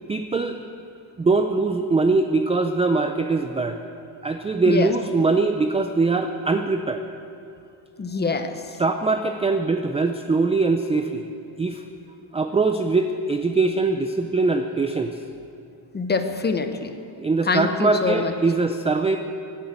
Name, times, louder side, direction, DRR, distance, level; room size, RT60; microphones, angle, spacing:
voice 1, 0.1-0.6 1.2-3.8 4.2-7.0 8.8-11.2 11.6-11.8 12.3-15.2 17.2-19.2, right 3 dB, 15° right, 6 dB, 0.3 m, -22 dB
voice 2, 8.0-8.6 15.9-16.9 17.5-18.3, left 4 dB, 20° left, 8 dB, 0.8 m, -24 dB
16.5 x 10.5 x 8.2 m, 2.5 s
cardioid pair, 170°, 49 cm